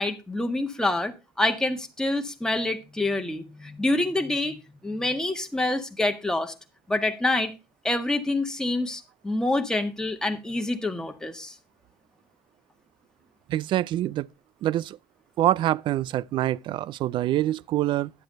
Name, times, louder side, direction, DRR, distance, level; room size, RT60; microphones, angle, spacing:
voice 1, 0.0-6.5 6.9-7.5 7.8-11.5, left 2 dB, 5° left, 1.7 m, -27 dB
voice 2, 13.5-14.3 14.6-15.0 15.4-18.1, right 13 dB, 60° right, 0.4 m, -25 dB
11.0 x 7.8 x 3.9 m
supercardioid pair, 75°, 9 cm